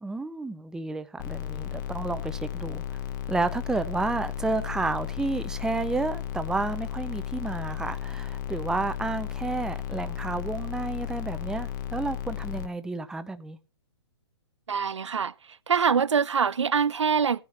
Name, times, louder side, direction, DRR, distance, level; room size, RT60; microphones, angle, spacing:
voice 1, 0.0-2.8 3.3-13.6, right 3 dB, 5° right, 0.6 m, -31 dB
sound 1, 1.2-12.7, left 11 dB, 45° left, 1.0 m, -34 dB
voice 2, 14.7-15.3 15.7-17.4, right 6 dB, 85° right, 0.5 m, -24 dB
16.0 x 9.4 x 2.9 m
hypercardioid pair, 130°, 15 cm